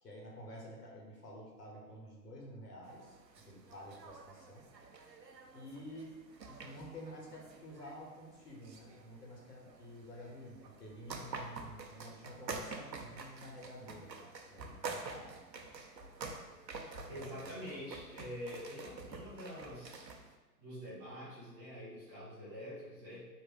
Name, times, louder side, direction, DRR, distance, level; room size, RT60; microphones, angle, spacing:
voice 1, 0.0-3.2 3.4-4.7 5.5-6.2 6.5-15.4 17.1-17.7, equal, 70° left, -2 dB, 1.5 m, -50 dB
sound 1, 2.9-20.4, right 4 dB, 85° right, 0.7 m, -48 dB
voice 2, 17.1-20.1 20.6-23.2, equal, 10° right, -10 dB, 0.5 m, -46 dB
3.2 x 3.2 x 4.6 m, 1.2 s
figure-of-eight pair, 120°, 49 cm